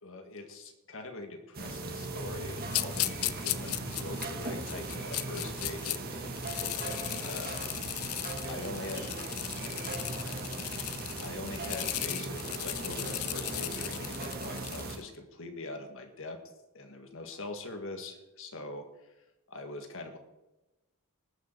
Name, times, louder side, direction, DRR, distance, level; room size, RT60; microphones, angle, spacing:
voice 1, 0.0-6.4 6.7-7.6 8.5-9.1 11.2-16.4 16.7-19.1 19.5-20.2, left 2 dB, 65° left, 5 dB, 1.8 m, -43 dB
sound 1, 1.5-15.0, right 2 dB, 45° right, 1.8 m, -38 dB
sound 2, 2.7-6.0 6.3-15.0, left 16 dB, 80° left, 0.5 m, -36 dB
voice 2, 6.9-7.5 8.3-10.8 17.2-17.5, right 1 dB, 70° right, -1 dB, 4.6 m, -50 dB
19.5 x 6.6 x 4.6 m, 1.0 s
head